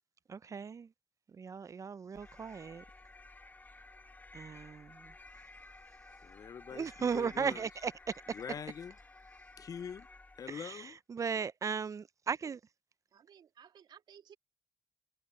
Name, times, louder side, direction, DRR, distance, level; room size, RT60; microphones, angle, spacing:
voice 1, 0.3-0.9 1.3-2.8 4.3-5.1 6.7-7.9 10.5-12.6, right 6 dB, 45° right, 0.5 m, -37 dB
sound 1, 2.1-10.7, left 2 dB, 20° left, 1.4 m, -54 dB
voice 2, 6.1-7.6 8.3-8.9 9.6-10.1 10.4-11.0, left 7 dB, 50° left, 0.3 m, -44 dB
voice 3, 13.1-14.3, right 8 dB, 75° right, 2.7 m, -57 dB
cardioid pair, 70°, 8 cm